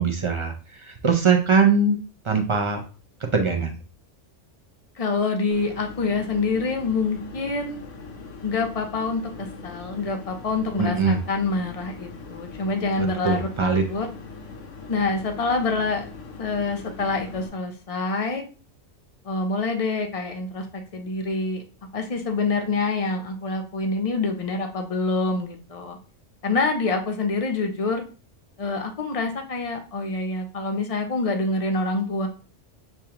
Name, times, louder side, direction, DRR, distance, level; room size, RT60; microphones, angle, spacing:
voice 1, 0.0-2.0 2.2-2.8 3.3-3.8 10.8-11.2 13.2-13.8, right 5 dB, 50° right, 3 dB, 0.3 m, -21 dB
voice 2, 5.0-7.9 8.4-14.1 14.9-16.0 16.4-18.4 19.2-21.6 21.9-26.0 26.4-28.0 28.6-32.3, left 3 dB, 40° left, 5 dB, 0.6 m, -26 dB
sound 1, 5.5-17.5, left 4 dB, 90° left, 1.1 m, -41 dB
6.8 x 2.3 x 2.9 m, 0.36 s
omnidirectional pair, 1.2 m